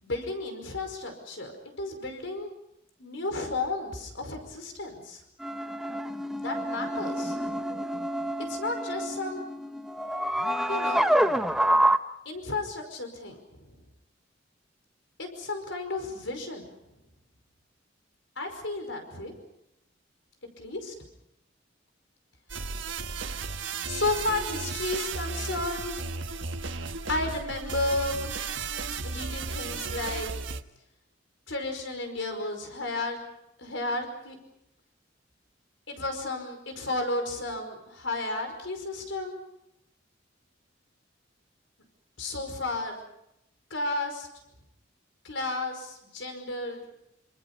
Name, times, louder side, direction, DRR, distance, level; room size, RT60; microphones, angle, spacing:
voice 1, 0.0-2.5 3.0-5.2 6.4-7.4 8.5-9.4 10.7-11.1 12.2-13.8 15.2-16.7 18.3-19.3 20.6-20.9 23.8-26.0 27.1-28.2 29.0-30.3 31.5-33.2 33.6-34.4 35.9-39.4 42.2-43.0 43.7-44.3 45.2-46.8, left 2 dB, 80° left, 5 dB, 5.2 m, -33 dB
sound 1, 5.4-12.0, right 1 dB, ahead, 0.9 m, -27 dB
sound 2, 22.5-30.6, right 4 dB, 80° right, 1.3 m, -34 dB
28.0 x 27.0 x 5.5 m, 0.82 s
head